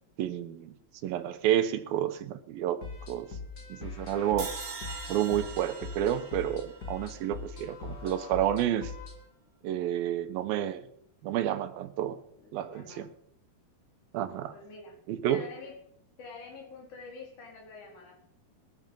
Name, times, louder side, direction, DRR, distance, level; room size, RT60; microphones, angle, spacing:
voice 1, 0.2-0.7 1.0-2.8 3.1-3.3 3.7-4.5 5.1-8.9 9.6-10.8 11.2-12.2 12.5-13.1 14.1-14.5 15.1-15.4, right 11 dB, 80° right, 11 dB, 2.8 m, -30 dB
sound 1, 2.8-9.3, left 4 dB, 35° left, 1.9 m, -42 dB
sound 2, 4.4-7.6, right 4 dB, 45° right, 4.0 m, -42 dB
voice 2, 12.4-13.1 14.5-15.0 15.3-15.8 16.2-18.2, left 4 dB, 55° left, -1 dB, 5.7 m, -46 dB
21.0 x 9.7 x 5.5 m, 0.70 s
omnidirectional pair, 4.1 m